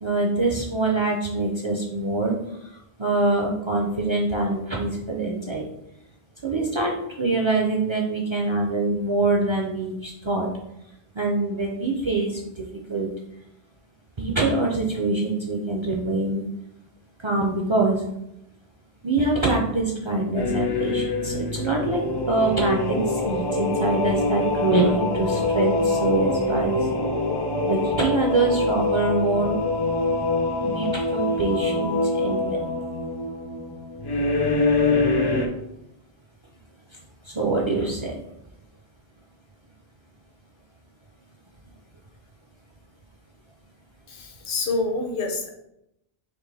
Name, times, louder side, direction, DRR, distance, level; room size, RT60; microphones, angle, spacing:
voice 1, 0.0-2.3 3.0-5.7 6.4-10.5 11.2-12.4 12.9-13.1 14.2-16.4 17.2-18.0 19.0-26.8 27.6-29.5 30.6-32.7 37.3-38.1, right 2 dB, 45° right, -1 dB, 0.4 m, -24 dB
sound 1, 20.4-35.5, left 2 dB, 45° left, 0.3 m, -24 dB
voice 2, 44.1-45.5, left 3 dB, 60° left, 3 dB, 0.8 m, -27 dB
4.2 x 2.9 x 3.3 m, 0.84 s
omnidirectional pair, 1.1 m